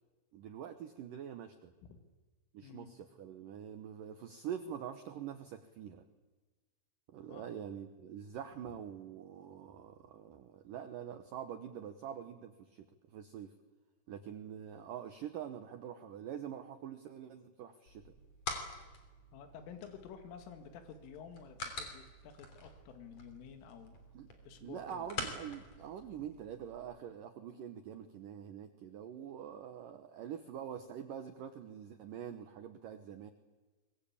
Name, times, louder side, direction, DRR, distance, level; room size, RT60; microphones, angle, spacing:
voice 1, 0.3-1.7 2.5-6.0 7.1-13.5 14.1-18.1 24.1-24.3 24.6-33.3, right 9 dB, 90° right, 9 dB, 1.9 m, -45 dB
voice 2, 2.6-2.9 7.3-7.5 19.3-24.0 24.5-25.1, left 7 dB, 85° left, 7 dB, 4.4 m, -51 dB
sound 1, 17.9-26.8, left 3 dB, 40° left, 3.7 m, -47 dB
24.5 x 21.5 x 8.7 m, 1.3 s
omnidirectional pair, 5.6 m